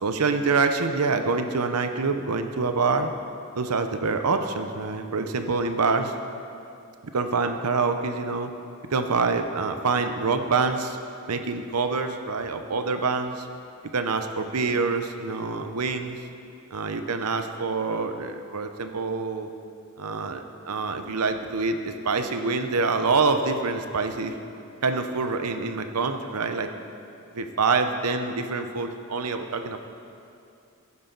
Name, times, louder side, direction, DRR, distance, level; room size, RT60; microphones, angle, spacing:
voice 1, 0.0-3.1 3.5-6.1 7.1-8.5 8.9-11.0 11.3-13.4 13.9-16.2 16.7-19.5 20.0-24.3 24.8-26.7 27.3-29.8, right 4 dB, 85° right, 7 dB, 0.8 m, -26 dB
15.5 x 9.5 x 4.0 m, 2.6 s
head